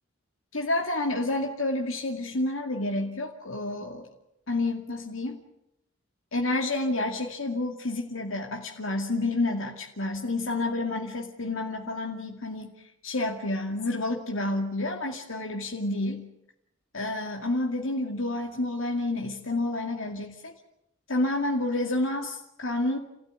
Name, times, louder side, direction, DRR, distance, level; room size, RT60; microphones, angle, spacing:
voice 1, 0.5-4.1 4.5-5.4 6.3-16.2 16.9-20.5 21.1-23.0, left 2 dB, 85° left, 1 dB, 2.4 m, -29 dB
29.0 x 16.5 x 9.5 m, 0.81 s
head